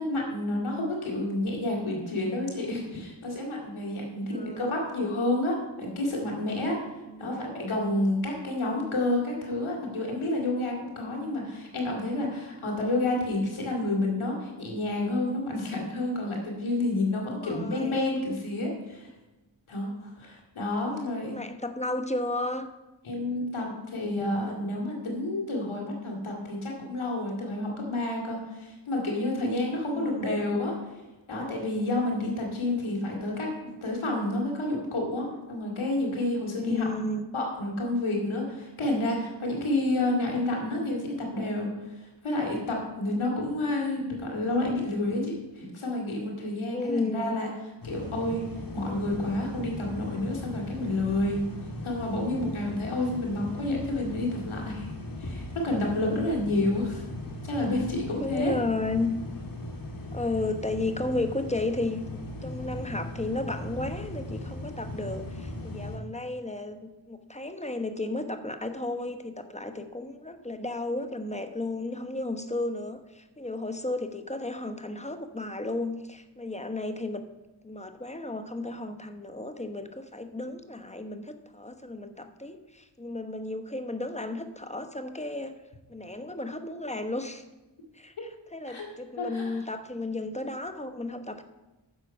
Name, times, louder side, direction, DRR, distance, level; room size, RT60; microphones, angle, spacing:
voice 1, 0.0-6.9 7.2-19.1 19.7-21.4 23.0-30.7 31.3-33.5 33.8-36.9 37.3-47.5 47.8-48.4 48.7-51.4 51.8-54.9 55.2-57.0 57.4-58.5 88.2-88.3 88.7-88.8 89.2-89.6, left 2 dB, 85° left, -1 dB, 2.5 m, -29 dB
voice 2, 4.0-4.8 7.0-7.4 17.3-18.0 21.2-22.7 29.9-30.5 36.5-37.3 46.7-47.4 56.2-56.3 58.2-59.1 60.1-77.3 77.6-85.6 85.9-87.4 87.9-91.4, left 2 dB, 15° left, 8 dB, 1.0 m, -33 dB
sound 1, 47.8-66.0, left 1 dB, 45° left, 1.9 m, -38 dB
10.5 x 6.9 x 5.5 m, 1.1 s
cardioid pair, 40°, 48 cm